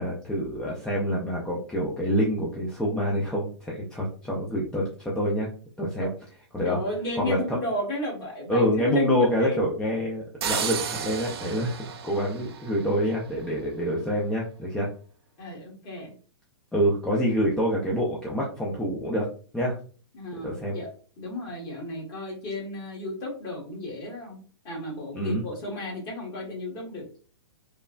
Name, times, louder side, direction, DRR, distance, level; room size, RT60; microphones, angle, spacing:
voice 1, 0.0-5.5 5.8-6.1 6.5-6.8 7.2-7.6 8.5-14.9 16.7-19.3 19.5-19.8 20.4-20.8 25.1-25.4, equal, 5° left, -4 dB, 0.4 m, -26 dB
voice 2, 6.6-9.6 15.4-16.1 20.1-20.9 21.2-24.4 24.6-27.1, left 2 dB, 30° left, -2 dB, 1.3 m, -33 dB
sound 1, 10.4-13.3, right 7 dB, 60° right, 0.5 m, -33 dB
3.1 x 2.0 x 2.4 m, 0.40 s
hypercardioid pair, 130°, 15 cm